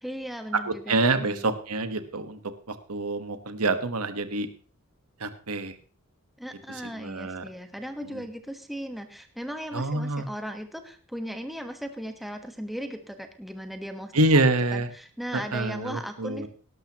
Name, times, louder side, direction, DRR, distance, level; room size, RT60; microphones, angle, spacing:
voice 1, 0.0-1.6 6.4-14.1 14.7-16.5, equal, ahead, 5 dB, 1.2 m, -37 dB
voice 2, 0.7-2.4 2.7-4.5 5.2-5.7 6.7-7.5 8.1-8.3 9.7-10.3 14.1-14.9 15.3-16.5, right 2 dB, 85° right, 9 dB, 1.3 m, -26 dB
18.0 x 12.0 x 3.0 m, 0.38 s
head